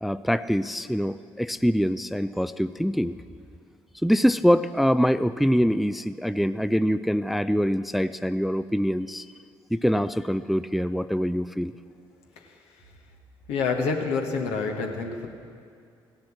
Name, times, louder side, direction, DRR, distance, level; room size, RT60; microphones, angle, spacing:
voice 1, 0.0-3.2 4.0-9.2 9.7-11.7, equal, ahead, 13 dB, 0.4 m, -24 dB
voice 2, 13.5-15.3, left 4 dB, 75° left, 2 dB, 1.4 m, -27 dB
16.0 x 7.5 x 7.5 m, 2.3 s
hypercardioid pair, 50°, 11 cm